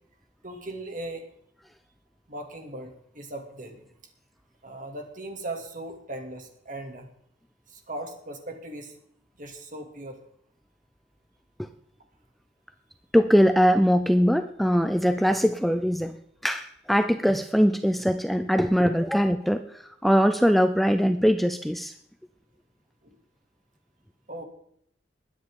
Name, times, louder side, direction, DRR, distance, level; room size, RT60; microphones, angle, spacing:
voice 1, 0.4-1.2 2.3-3.9 4.6-7.1 7.7-8.9 9.4-10.2 23.0-23.2 24.3-24.4, right 1 dB, 45° right, 4 dB, 2.6 m, -38 dB
voice 2, 13.1-16.2 16.4-21.9, equal, ahead, 9 dB, 0.5 m, -22 dB
21.0 x 10.0 x 3.8 m, 0.69 s
head